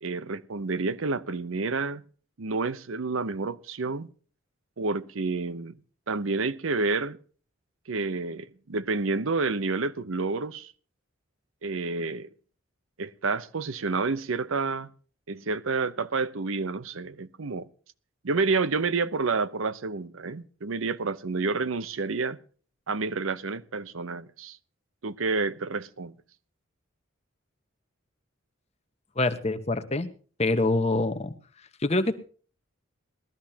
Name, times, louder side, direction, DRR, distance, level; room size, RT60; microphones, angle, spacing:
voice 1, 0.0-2.0 2.4-4.1 4.8-5.7 6.1-7.2 7.9-10.7 11.6-12.3 13.0-14.9 15.3-17.7 18.2-22.4 22.9-24.6 25.0-26.1, right 4 dB, 80° right, 0.7 m, -29 dB
voice 2, 29.2-30.1 30.4-31.3 31.8-32.2, left 2 dB, 30° left, 1.1 m, -25 dB
20.0 x 13.5 x 2.8 m
head